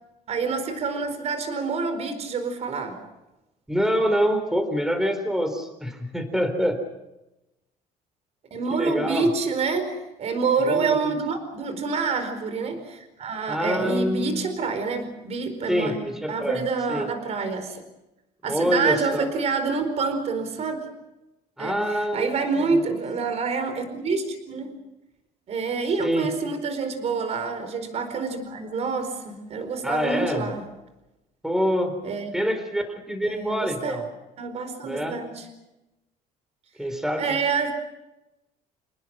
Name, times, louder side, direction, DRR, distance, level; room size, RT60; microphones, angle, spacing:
voice 1, 0.3-3.0 8.5-15.9 16.3-17.8 18.4-20.8 21.6-24.7 25.5-30.6 32.0-32.3 33.2-34.0 34.4-35.4 37.2-37.7, right 4 dB, 45° right, 9 dB, 4.6 m, -27 dB
voice 2, 3.7-6.8 8.7-9.3 10.6-11.2 13.5-14.4 15.7-17.1 18.5-19.3 21.6-23.0 26.0-26.3 29.8-30.5 31.4-32.0 32.3-34.0 34.8-35.2 36.8-37.4, equal, 5° right, 7 dB, 3.9 m, -26 dB
29.0 x 19.5 x 6.2 m, 0.97 s
cardioid pair, 135°, 15 cm